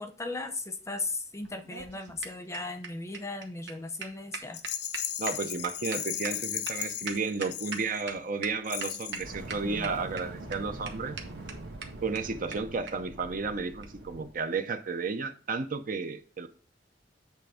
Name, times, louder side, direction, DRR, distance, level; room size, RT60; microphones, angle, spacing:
voice 1, 0.0-4.6 9.6-9.9, left 3 dB, 15° left, 8 dB, 0.7 m, -37 dB
sound 1, 1.4-8.1 8.4-8.5 8.8-9.2 9.5-10.2 10.5-10.6 10.9-11.0 11.2-11.3 11.5-11.6 11.8-11.9 12.1-12.2 12.5-12.6 12.9-13.0 13.8-14.0, right 5 dB, 85° right, 1.2 m, -39 dB
Rattle, 4.5-8.2 8.6-9.3, left 11 dB, 65° left, 0.6 m, -36 dB
voice 2, 5.2-11.2 12.0-16.5, right 4 dB, 50° right, 9 dB, 0.6 m, -33 dB
Fire, 9.1-14.4, right 1 dB, 70° right, 1.6 m, -43 dB
8.3 x 3.4 x 4.9 m, 0.39 s
head